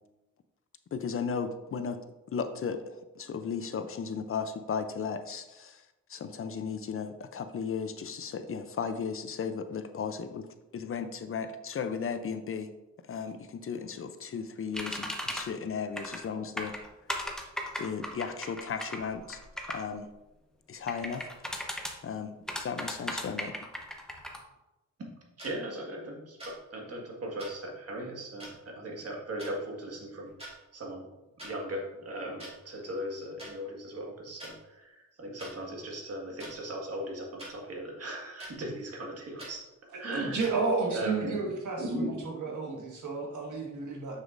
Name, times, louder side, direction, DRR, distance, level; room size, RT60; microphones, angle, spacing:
voice 1, 0.9-2.0 2.3-5.8 6.1-10.5 10.7-12.7 13.1-16.7 17.8-19.4 19.7-20.1 20.7-21.3 22.0-23.5, left 6 dB, 45° left, 10 dB, 0.5 m, -35 dB
sound 1, 14.7-15.4 16.0-16.3 16.6-19.8 20.9-21.9 22.5-24.4, equal, ahead, 0.8 m, -36 dB
sound 2, 25.4-25.5 26.4-26.6 27.4-27.5 28.4-28.5 29.4-29.5 30.3-30.5 31.4-31.5 32.4-32.5 33.4-33.5 34.4-34.5 35.4-35.5 36.4-36.5 37.4-37.5 38.4-38.5 39.4-39.5 40.4-40.5, right 1 dB, 20° right, 2.4 m, -44 dB
voice 2, 25.4-31.1 31.4-39.6 40.0-40.5 40.9-42.2 42.4-42.5, right 1 dB, 55° right, 0 dB, 1.7 m, -38 dB
voice 3, 40.1-42.1 42.4-44.2, right 4 dB, 80° right, -1 dB, 1.6 m, -32 dB
7.2 x 6.4 x 2.5 m, 1.0 s
wide cardioid pair, 115°, 30 cm